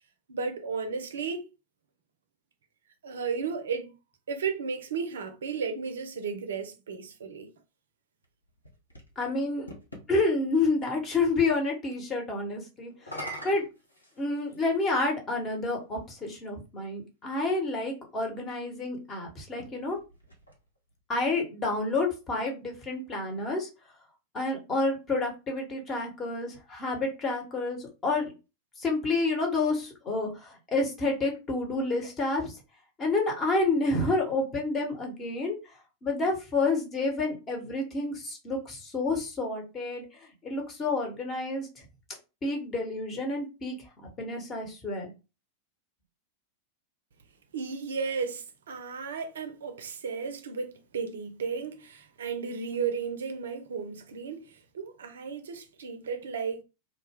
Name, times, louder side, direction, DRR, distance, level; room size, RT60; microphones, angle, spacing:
voice 1, 0.3-1.4 3.0-4.0 4.3-7.5 47.5-56.6, right 5 dB, 65° right, 0.4 m, -34 dB
sound 1, 8.2-10.1 12.9-14.7 15.6-15.7 19.4-21.0, equal, 85° left, 0.8 m, -44 dB
voice 2, 9.2-9.7 10.1-13.2 13.4-13.6 14.2-20.0 21.1-23.7 24.3-28.3 28.8-32.5 33.0-35.6 36.0-40.0 40.4-41.7 42.4-43.8 44.2-45.1, left 3 dB, 25° left, 1.0 m, -29 dB
2.3 x 2.1 x 3.4 m
figure-of-eight pair, 90°, 0 cm